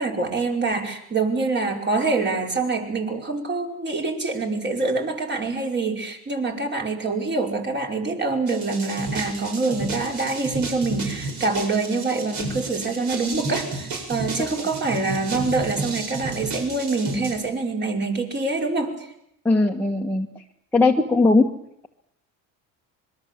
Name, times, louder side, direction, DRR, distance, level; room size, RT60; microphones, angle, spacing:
voice 1, 0.0-18.9, right 3 dB, 30° right, 2 dB, 5.1 m, -25 dB
sound 1, 8.5-17.3, right 3 dB, 55° right, 8.0 m, -32 dB
voice 2, 19.4-20.3 20.7-21.5, left 3 dB, 5° left, -1 dB, 1.4 m, -19 dB
26.0 x 21.5 x 7.6 m, 0.76 s
cardioid pair, 115°, 36 cm